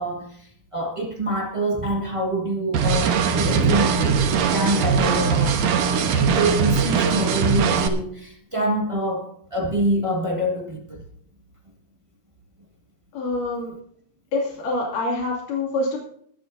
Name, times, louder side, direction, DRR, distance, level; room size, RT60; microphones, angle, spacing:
voice 1, 0.0-5.6 5.9-11.0, right 1 dB, 35° right, 0 dB, 0.5 m, -26 dB
sound 1, 2.7-7.9, right 6 dB, 75° right, 2.6 m, -21 dB
voice 2, 13.1-13.7 14.3-16.0, left 2 dB, 75° left, -3 dB, 4.2 m, -26 dB
20.5 x 12.0 x 2.7 m, 0.64 s
omnidirectional pair, 3.8 m